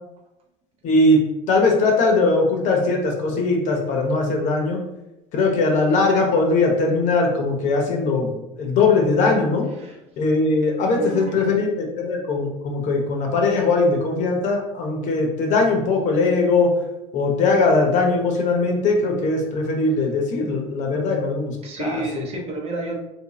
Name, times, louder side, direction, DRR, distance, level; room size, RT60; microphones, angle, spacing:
voice 1, 0.8-1.2 1.5-4.8 5.3-8.3 8.6-9.7 10.2-16.7 17.1-22.2, left 3 dB, 55° left, 1 dB, 0.9 m, -20 dB
voice 2, 10.9-11.4 20.9-21.0 21.6-23.0, right 3 dB, 45° right, 1 dB, 0.8 m, -30 dB
3.1 x 2.7 x 3.1 m, 0.92 s
supercardioid pair, 115°, 15 cm